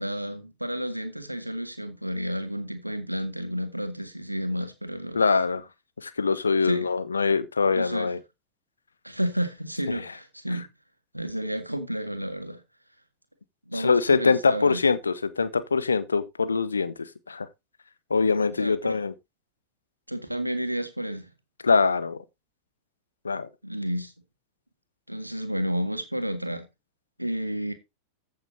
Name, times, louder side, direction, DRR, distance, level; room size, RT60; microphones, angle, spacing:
voice 1, 0.0-5.2 6.6-6.9 7.7-8.1 9.0-10.7 11.1-12.6 13.7-14.8 18.5-19.0 20.1-21.3 23.6-24.1 25.1-26.7 27.2-27.7, equal, 90° right, 1.8 m, -31 dB
voice 2, 5.1-5.6 6.0-8.2 9.9-10.0 13.7-16.9 17.3-17.5 18.1-19.1 21.6-22.2 23.2-23.5, left 4 dB, 75° left, 0.9 m, -23 dB
14.5 x 6.7 x 2.7 m
figure-of-eight pair, 90°, 0 cm